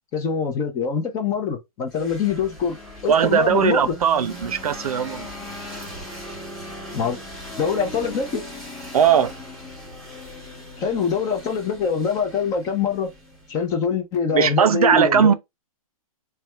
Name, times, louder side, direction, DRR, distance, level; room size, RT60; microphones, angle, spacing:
voice 1, 0.1-2.8 3.0-3.9 6.9-7.2 7.6-8.4 10.8-13.1 13.5-15.3, left 6 dB, 20° left, 0.6 m, -24 dB
sound 1, 1.9-13.7, left 1 dB, ahead, 0.9 m, -39 dB
voice 2, 3.1-5.3 8.9-9.3 14.3-15.3, right 7 dB, 80° right, 0.6 m, -18 dB
3.3 x 2.3 x 4.2 m
hypercardioid pair, 155°, 19 cm